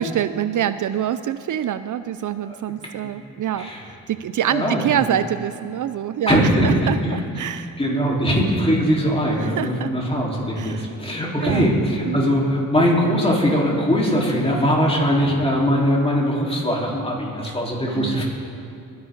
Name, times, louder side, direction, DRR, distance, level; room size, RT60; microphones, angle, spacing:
voice 1, 0.0-3.7 4.1-8.1 9.4-9.9 10.6-10.9 11.4-11.7 12.1-12.3 17.5-17.6 17.9-18.2, right 10 dB, 60° right, 13 dB, 0.5 m, -26 dB
voice 2, 3.5-3.9 4.5-4.9 6.3-7.2 7.8-18.2, equal, 15° left, -4 dB, 4.0 m, -21 dB
21.5 x 10.5 x 3.9 m, 2.6 s
cardioid pair, 65°, 35 cm